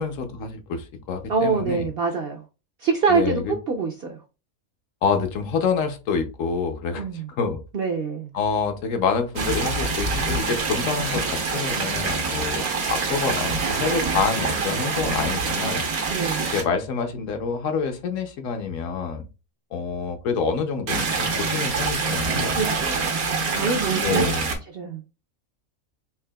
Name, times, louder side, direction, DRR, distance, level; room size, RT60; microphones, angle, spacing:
voice 1, 0.0-1.9 3.1-3.5 5.0-7.0 7.4-7.6 8.3-15.9 16.5-19.2 19.7-22.6 24.0-24.6, left 5 dB, 70° left, 1.0 m, -27 dB
voice 2, 1.3-2.4 2.8-4.2 7.0-7.3 7.7-8.3 16.1-16.5 22.5-23.2 23.5-24.2 24.7-25.0, right 4 dB, 60° right, 0.6 m, -25 dB
sound 1, 9.4-16.6 20.9-24.6, right 4 dB, 90° right, 1.4 m, -25 dB
4.6 x 3.3 x 2.2 m
omnidirectional pair, 1.5 m